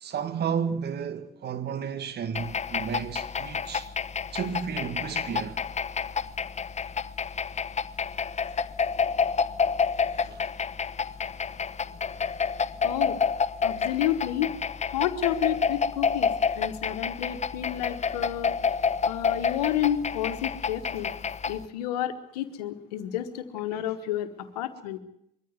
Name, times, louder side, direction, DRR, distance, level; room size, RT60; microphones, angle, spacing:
voice 1, 0.0-3.9 4.3-5.6 10.2-10.5 23.7-23.8, right 7 dB, 60° right, 2.0 m, -32 dB
sound 1, 2.3-21.6, left 6 dB, 35° left, 1.0 m, -29 dB
voice 2, 12.8-13.2 13.6-14.5 14.9-18.6 19.0-21.1 21.5-24.3 24.5-25.0, left 11 dB, 90° left, 1.2 m, -30 dB
22.5 x 14.0 x 9.4 m
hypercardioid pair, 50°, 20 cm